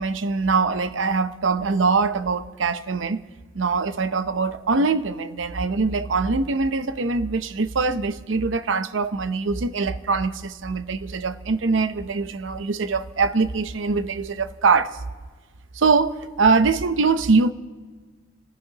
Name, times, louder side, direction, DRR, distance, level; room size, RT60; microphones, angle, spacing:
voice 1, 0.0-3.2 3.5-15.0 15.7-17.5, right 4 dB, 85° right, 0.7 m, -23 dB
29.5 x 15.0 x 2.9 m
head